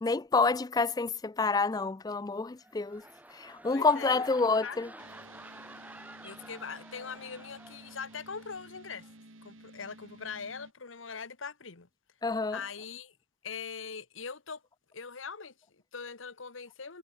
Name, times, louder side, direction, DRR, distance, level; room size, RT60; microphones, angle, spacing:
voice 1, 0.0-3.0 3.3-4.9 12.2-12.6, left 4 dB, 20° left, 0.4 m, -28 dB
sound 1, 2.5-8.5 8.8-9.1, right 1 dB, 10° right, 5.6 m, -51 dB
voice 2, 3.7-4.2 4.6-4.8 6.2-9.1 9.4-11.9 12.5-13.1 13.4-14.6 14.9-17.0, left 5 dB, 80° left, 1.4 m, -42 dB
sound 2, 5.0-10.7, right 2 dB, 90° right, 3.4 m, -53 dB
head